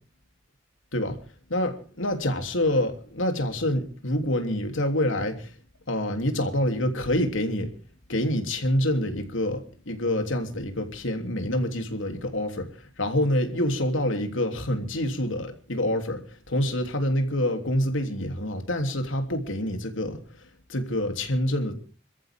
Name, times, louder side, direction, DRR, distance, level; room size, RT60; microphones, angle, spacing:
voice 1, 1.5-5.5 5.9-7.7 8.1-20.2 20.7-21.7, left 1 dB, 90° left, 3.2 m, -27 dB
27.0 x 14.0 x 3.7 m
head